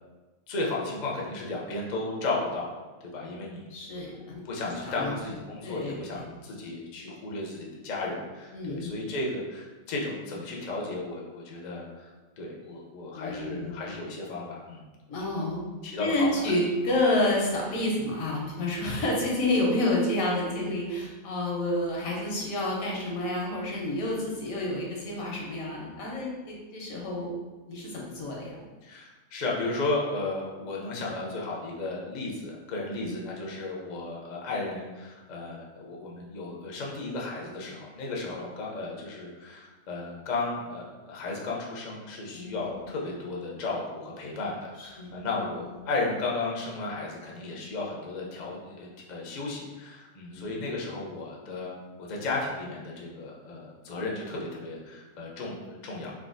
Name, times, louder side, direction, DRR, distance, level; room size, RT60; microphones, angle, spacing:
voice 1, 0.5-2.7 3.1-3.7 4.4-12.1 12.4-14.8 15.2-15.4 15.8-16.5 18.9-19.0 28.8-51.8 52.1-56.1, left 2 dB, 60° left, -2 dB, 0.4 m, -34 dB
voice 2, 3.7-5.2 5.6-6.4 8.5-8.9 13.1-13.7 15.1-15.6 16.0-27.3 27.7-28.6 32.9-33.2 42.3-42.8 44.8-45.1 50.3-50.7, left 1 dB, 85° left, -2 dB, 1.2 m, -29 dB
3.5 x 2.2 x 2.4 m, 1.2 s
omnidirectional pair, 1.4 m